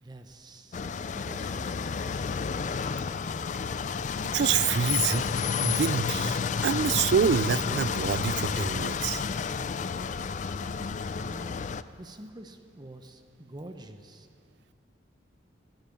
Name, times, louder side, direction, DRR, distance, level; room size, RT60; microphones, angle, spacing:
voice 1, 0.0-2.2 11.1-11.7 12.0-14.3, right 1 dB, 20° right, 7 dB, 0.7 m, -47 dB
sound 1, 0.7-11.8, left 6 dB, 40° left, 0.3 m, -30 dB
voice 2, 4.3-5.3 5.6-9.2, right 7 dB, 65° right, 19 dB, 0.3 m, -27 dB
15.5 x 12.0 x 7.1 m, 2.2 s
head